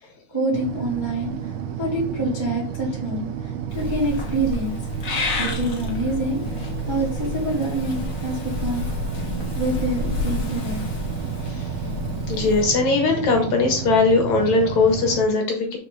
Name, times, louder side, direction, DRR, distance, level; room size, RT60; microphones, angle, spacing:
voice 1, 0.3-1.3 1.8-3.3 3.7-4.8 5.4-6.4 6.9-8.8 9.5-10.8, right 1 dB, 10° right, -4 dB, 1.4 m, -26 dB
sound 1, 0.5-15.2, right 9 dB, 70° right, 1.8 m, -31 dB
Purr / Meow, 3.7-12.6, left 4 dB, 85° left, 0.7 m, -30 dB
voice 2, 12.3-15.8, left 3 dB, 65° left, 2 dB, 2.5 m, -20 dB
5.4 x 5.3 x 4.8 m, 0.41 s
omnidirectional pair, 3.8 m